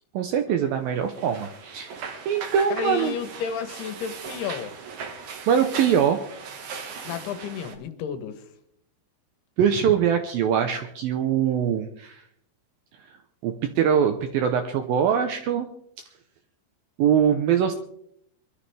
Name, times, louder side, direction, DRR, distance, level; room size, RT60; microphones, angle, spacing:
voice 1, 0.1-2.0 2.3-3.1 5.5-6.2 9.6-12.2 13.4-15.7 17.0-17.7, right 8 dB, 75° right, 7 dB, 2.2 m, -22 dB
sound 1, 1.0-7.8, right 5 dB, 55° right, 2.3 m, -38 dB
voice 2, 2.7-4.8 7.0-8.5, left 7 dB, 75° left, 10 dB, 2.9 m, -32 dB
23.5 x 13.0 x 3.4 m, 0.68 s
omnidirectional pair, 5.0 m